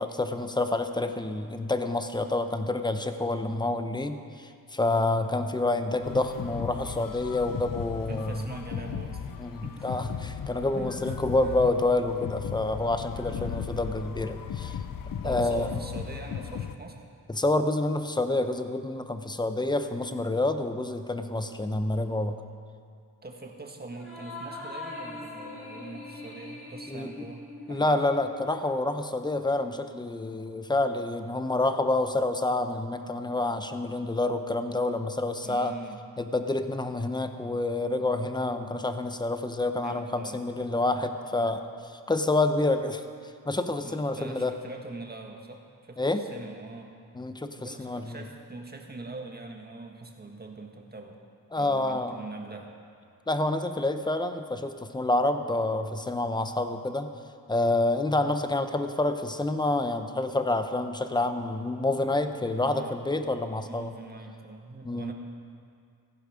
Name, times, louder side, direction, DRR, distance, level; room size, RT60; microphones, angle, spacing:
voice 1, 0.0-8.5 9.4-14.8 15.2-15.7 17.3-22.4 26.9-27.3 27.7-35.8 36.2-43.0 43.4-44.5 46.0-46.2 47.2-48.2 51.5-52.2 53.3-57.1 57.5-63.9 64.8-65.1, left 2 dB, 10° left, 8 dB, 0.8 m, -28 dB
sound 1, 6.0-16.8, left 8 dB, 60° left, 0.8 m, -36 dB
voice 2, 7.9-9.3 9.6-9.9 10.7-11.3 13.3-13.6 15.2-17.0 23.2-28.0 35.4-36.0 39.8-40.7 43.8-46.9 47.6-51.2 51.6-52.7 62.4-63.0 63.6-65.1, right 3 dB, 25° right, 2 dB, 1.7 m, -43 dB
sound 2, 23.9-28.7, left 2 dB, 35° left, 4.9 m, -42 dB
16.5 x 15.5 x 5.1 m, 2.3 s
wide cardioid pair, 130°, 38 cm